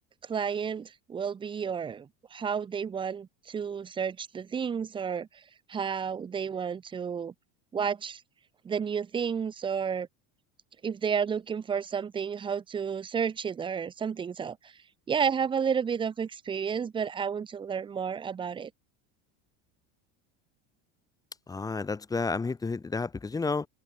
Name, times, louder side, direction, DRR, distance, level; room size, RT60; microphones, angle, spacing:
voice 1, 0.2-5.4 5.7-7.3 7.7-8.2 8.6-10.1 10.8-14.7 15.1-18.7, right 7 dB, 15° right, 1.1 m, -31 dB
voice 2, 21.5-23.7, left 4 dB, 10° left, 3.1 m, -31 dB
cardioid pair, 165°, 31 cm